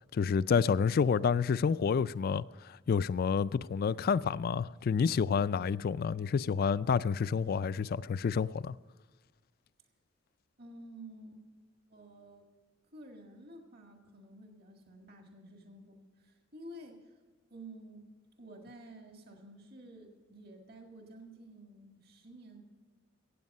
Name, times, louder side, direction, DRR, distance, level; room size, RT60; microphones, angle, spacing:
voice 1, 0.1-8.7, left 6 dB, 50° left, 0.3 m, -29 dB
voice 2, 10.6-11.4 11.9-12.4 12.9-17.2 17.5-18.1 18.4-22.6, right 1 dB, 50° right, 1.8 m, -51 dB
16.5 x 8.3 x 5.4 m
head